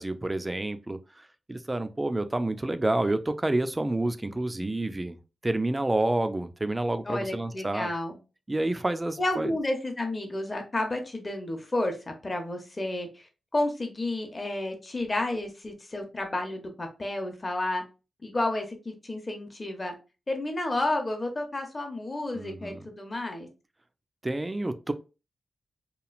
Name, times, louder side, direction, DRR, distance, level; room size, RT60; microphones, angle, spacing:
voice 1, 0.0-5.2 5.4-7.9 8.5-9.5 22.3-22.8 24.2-24.9, right 2 dB, 20° right, 10 dB, 0.3 m, -29 dB
voice 2, 7.1-8.2 9.2-17.8 18.2-19.9 20.3-23.5, left 2 dB, 30° left, 4 dB, 0.8 m, -31 dB
3.0 x 2.4 x 2.4 m, 0.31 s
cardioid pair, 80°, 0 cm